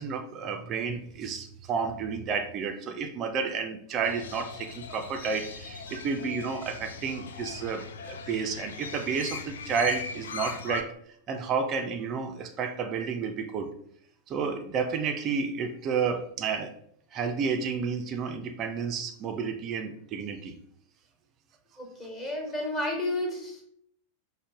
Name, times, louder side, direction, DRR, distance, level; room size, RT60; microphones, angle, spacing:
voice 1, 0.0-10.9 11.3-13.7 14.3-16.7 17.1-20.5, right 5 dB, 35° right, 5 dB, 0.4 m, -31 dB
Crow, 4.0-10.8, left 5 dB, 65° left, 0.4 m, -40 dB
voice 2, 21.8-23.6, left 1 dB, 20° left, 0 dB, 1.3 m, -32 dB
5.1 x 2.1 x 3.5 m, 0.67 s
figure-of-eight pair, 90°, 0 cm